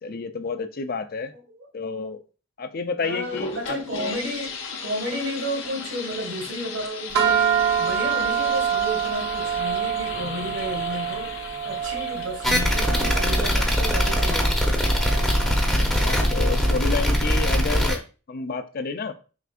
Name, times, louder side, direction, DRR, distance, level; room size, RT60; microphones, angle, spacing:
voice 1, 0.0-1.3 1.7-2.2 2.6-4.2 15.7-19.1, left 4 dB, 50° left, 0.4 m, -30 dB
voice 2, 1.3-1.7 3.0-4.6 4.8-7.5 7.8-14.9, equal, 70° right, 1.4 m, -32 dB
sound 1, 3.0-15.5, left 5 dB, 70° left, 0.9 m, -37 dB
sound 2, 7.2-17.6, right 8 dB, 55° right, 0.8 m, -27 dB
sound 3, 12.4-17.9, equal, 5° left, 0.7 m, -21 dB
4.9 x 3.4 x 2.4 m
head